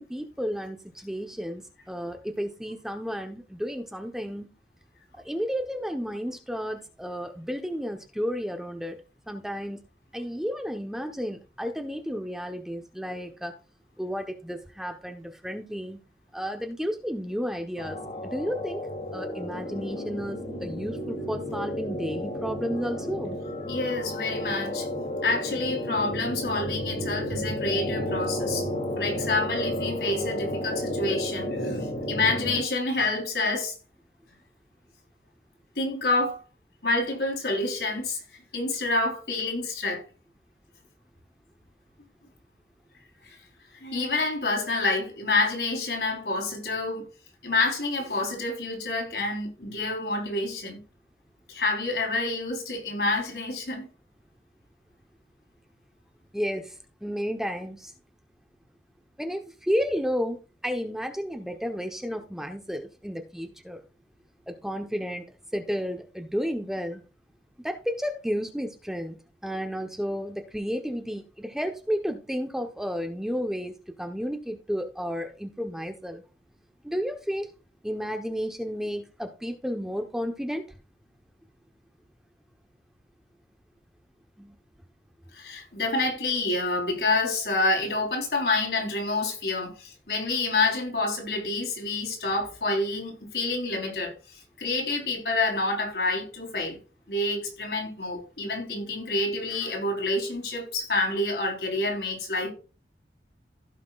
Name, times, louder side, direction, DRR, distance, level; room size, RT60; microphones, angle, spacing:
voice 1, 0.0-4.5 5.1-9.0 9.3-9.8 10.1-13.5 14.0-16.0 16.3-18.8 19.1-23.4 56.3-57.9 59.2-63.8 64.5-67.0 67.6-69.2 69.4-73.7 74.0-76.2 76.8-77.5 77.8-80.6 84.4-84.5, equal, 5° right, 0.9 m, -32 dB
sound 1, 17.8-32.6, left 1 dB, 45° left, 2.6 m, -32 dB
voice 2, 23.7-24.9 25.2-28.7 29.0-33.7 35.8-36.4 36.8-38.2 38.5-40.0 43.2-43.4 43.7-47.0 47.4-50.8 51.5-53.9 85.3-94.1 94.6-96.8 97.1-102.5, left 2 dB, 70° left, 3.7 m, -28 dB
16.0 x 5.9 x 2.4 m
head